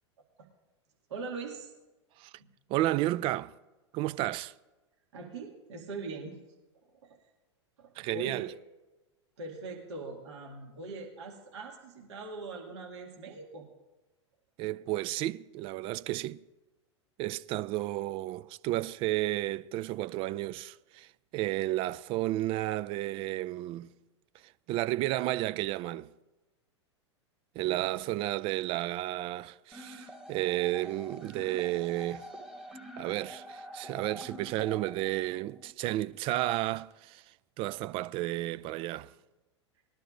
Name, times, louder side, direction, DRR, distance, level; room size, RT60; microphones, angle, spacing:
voice 1, 1.1-1.7 2.4-2.5 5.1-6.4 7.0-7.2 7.8-8.4 9.4-13.6 27.6-27.9 39.8-39.9, right 3 dB, 70° right, 2.2 m, -42 dB
voice 2, 2.7-3.5 3.9-4.5 8.0-8.5 14.6-16.4 17.2-23.9 24.4-26.1 27.6-32.3 33.0-39.1, right 16 dB, 35° right, 0.4 m, -32 dB
sound 1, 29.7-35.7, equal, 5° right, 1.3 m, -47 dB
20.0 x 11.5 x 2.6 m
hypercardioid pair, 95°, 15 cm